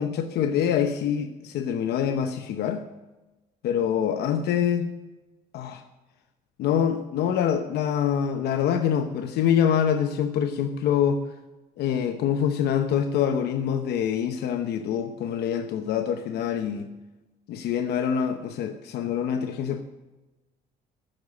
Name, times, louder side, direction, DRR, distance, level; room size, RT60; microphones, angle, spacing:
voice 1, 0.0-2.8 3.6-4.9 5.5-5.8 6.6-11.2 11.8-16.9 17.5-19.8, left 8 dB, 75° left, 7 dB, 0.9 m, -25 dB
15.5 x 6.6 x 6.2 m, 1.1 s
cardioid pair, 110°, 17 cm